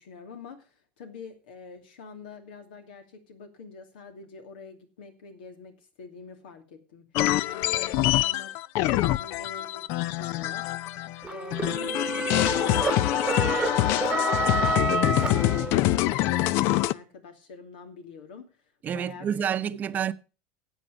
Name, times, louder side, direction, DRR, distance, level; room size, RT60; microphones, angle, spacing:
voice 1, 0.0-7.1 7.4-8.5 8.9-10.7 11.0-18.6 18.9-19.5, left 5 dB, 90° left, 2.6 m, -46 dB
sound 1, 7.2-11.2 11.5-16.9, left 15 dB, 60° left, 0.5 m, -25 dB
sound 2, 11.2-16.1, right 4 dB, 15° right, 1.1 m, -29 dB
voice 2, 18.8-20.1, right 9 dB, 35° right, 0.8 m, -28 dB
11.5 x 8.0 x 6.3 m
supercardioid pair, 115°, 5 cm